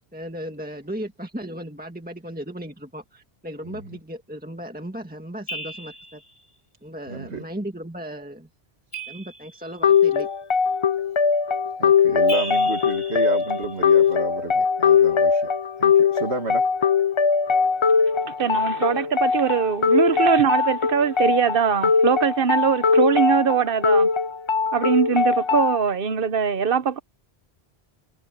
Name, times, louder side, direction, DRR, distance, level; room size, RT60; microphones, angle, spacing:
voice 1, 0.1-6.2 6.8-8.5 9.1-10.3, equal, 10° right, 1.7 m, -36 dB
sound 1, 5.5-6.3 8.9-10.0 12.3-13.9, right 1 dB, 80° left, 5.2 m, -36 dB
voice 2, 7.1-7.5 11.8-15.5 15.8-16.7, right 3 dB, 80° right, 2.5 m, -31 dB
sound 2, 9.8-25.8, left 6 dB, 40° left, 0.4 m, -20 dB
voice 3, 18.3-24.1 24.7-27.0, right 7 dB, 60° right, 1.0 m, -22 dB
omnidirectional pair, 1.1 m